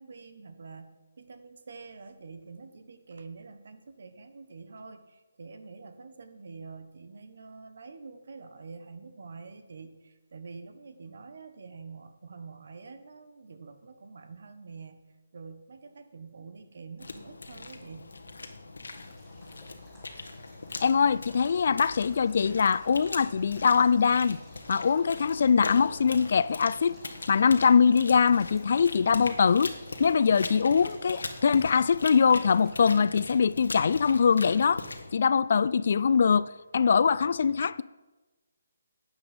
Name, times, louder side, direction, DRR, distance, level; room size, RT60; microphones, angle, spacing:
voice 1, 0.0-18.1, right 4 dB, 60° right, 1.2 m, -46 dB
sound 1, 17.0-35.1, left 3 dB, 80° left, 1.4 m, -41 dB
Male speech man speaking / Stream / Trickle dribble, 18.9-32.9, equal, 5° right, 3.4 m, -56 dB
voice 2, 20.8-24.4 24.7-27.0 27.3-29.7 30.0-34.8 35.1-37.8, left 6 dB, 55° left, 0.4 m, -23 dB
12.0 x 8.3 x 5.2 m
hypercardioid pair, 155°, 0 cm